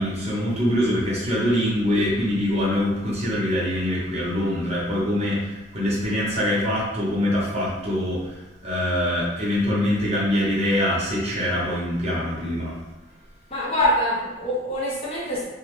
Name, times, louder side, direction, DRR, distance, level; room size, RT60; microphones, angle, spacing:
voice 1, 0.0-12.8, left 1 dB, 35° right, -6 dB, 0.7 m, -24 dB
voice 2, 13.5-15.5, left 1 dB, 30° left, -6 dB, 0.6 m, -24 dB
2.5 x 2.0 x 2.9 m, 1.0 s
head